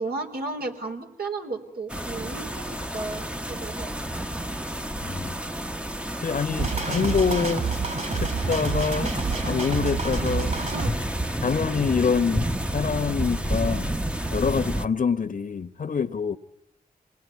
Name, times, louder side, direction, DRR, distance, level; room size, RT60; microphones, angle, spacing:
voice 1, 0.0-3.9 10.7-10.9, right 3 dB, 70° right, 3.9 m, -34 dB
sound 1, 1.9-14.9, right 1 dB, 5° right, 1.1 m, -30 dB
voice 2, 5.0-5.4 6.2-7.6 8.1-9.1 9.4-10.5 11.4-13.9 14.3-16.4, left 6 dB, 55° left, 1.2 m, -26 dB
sound 2, 6.6-10.9, right 4 dB, 50° right, 7.0 m, -28 dB
27.0 x 20.0 x 9.5 m
cardioid pair, 55°, 17 cm